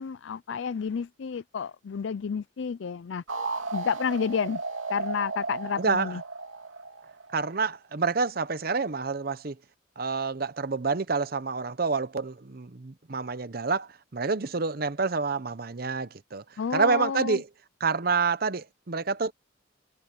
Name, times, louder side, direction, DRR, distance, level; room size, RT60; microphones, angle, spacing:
voice 1, 0.0-3.2 3.7-4.6 4.9-6.2 16.6-17.4, left 6 dB, 65° left, 0.4 m, -30 dB
sound 1, 3.3-7.8, right 3 dB, 85° right, 2.6 m, -35 dB
voice 2, 5.8-6.2 7.3-9.5 10.0-16.4 16.7-17.5 17.8-19.3, right 4 dB, 50° right, 0.8 m, -28 dB
head